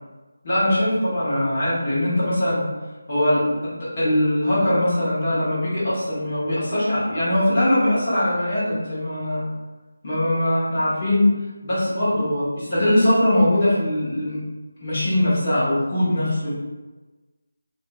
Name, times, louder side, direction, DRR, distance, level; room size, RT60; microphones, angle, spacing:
voice 1, 0.4-2.7 3.1-3.4 3.8-9.4 10.0-11.3 11.6-14.4 14.8-16.5, left 1 dB, 35° left, -10 dB, 1.2 m, -21 dB
2.7 x 2.5 x 2.2 m, 1.2 s
figure-of-eight pair, 165°, 0 cm